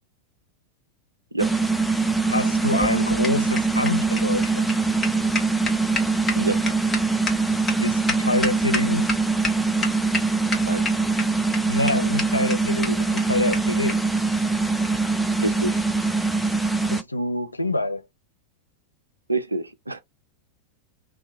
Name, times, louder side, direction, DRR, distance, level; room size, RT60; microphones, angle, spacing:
voice 1, 1.3-1.6 6.4-6.8 10.7-10.8 15.4-15.8 19.3-20.0, right 2 dB, 80° right, 0.4 m, -27 dB
sound 1, 1.4-17.0, right 3 dB, ahead, 0.4 m, -23 dB
voice 2, 2.3-4.7 7.8-9.1 11.7-14.0 16.9-18.0, left 2 dB, 85° left, 0.4 m, -26 dB
sound 2, 2.5-9.2 9.4-9.5 9.8-10.2 10.5-11.2 11.5-11.6 11.9-12.0 12.2-12.3 12.5-12.6 12.8-12.9 13.2-13.3 13.5-13.6 13.9-14.0 14.8-15.0, left 3 dB, 20° left, 0.9 m, -28 dB
2.6 x 2.1 x 2.6 m
figure-of-eight pair, 90°, 0 cm